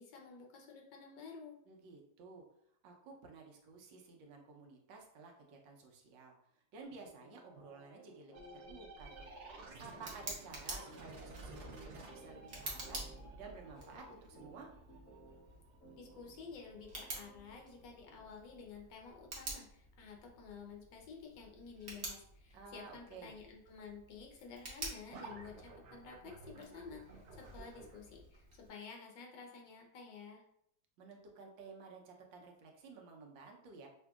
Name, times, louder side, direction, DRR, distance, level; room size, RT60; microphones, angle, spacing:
voice 1, 0.0-1.6 16.0-30.4, left 5 dB, 75° left, 1 dB, 1.4 m, -52 dB
voice 2, 1.7-2.4 2.8-6.4 6.7-9.3 9.8-13.0 13.4-14.7 22.5-23.3 31.0-33.9, right 4 dB, 80° right, 1 dB, 1.4 m, -53 dB
sound 1, 6.8-18.6, equal, 60° left, 1.0 m, -60 dB
sound 2, 8.3-17.8 25.1-28.0, right 3 dB, 60° right, 0.7 m, -54 dB
Tick, 9.0-28.7, right 2 dB, 45° right, 1.0 m, -50 dB
5.8 x 2.6 x 2.3 m, 0.71 s
omnidirectional pair, 2.0 m